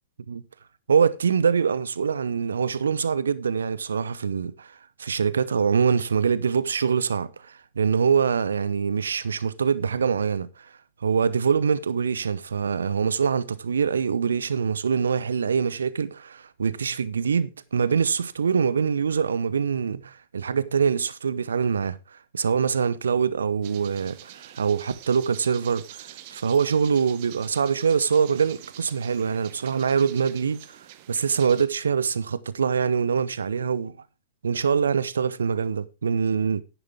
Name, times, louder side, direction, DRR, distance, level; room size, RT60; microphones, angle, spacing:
voice 1, 0.9-10.7 11.0-22.0 22.3-30.8 31.1-34.0 34.4-36.6, right 6 dB, 70° right, 0.7 m, -24 dB
sound 1, 23.6-31.7, right 14 dB, 45° right, 0.9 m, -46 dB
10.5 x 10.0 x 3.6 m
figure-of-eight pair, 105°, 0 cm